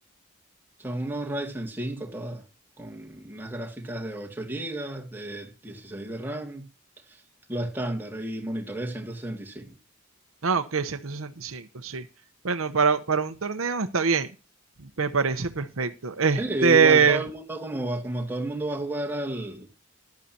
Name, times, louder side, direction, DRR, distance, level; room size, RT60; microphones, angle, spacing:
voice 1, 0.8-2.4 2.8-6.6 7.1-7.2 7.5-9.8 16.4-19.7, right 1 dB, 10° right, 2.1 m, -32 dB
voice 2, 10.4-12.0 12.4-14.3 15.0-17.2, right 5 dB, 80° right, 0.9 m, -23 dB
15.0 x 11.5 x 2.8 m
head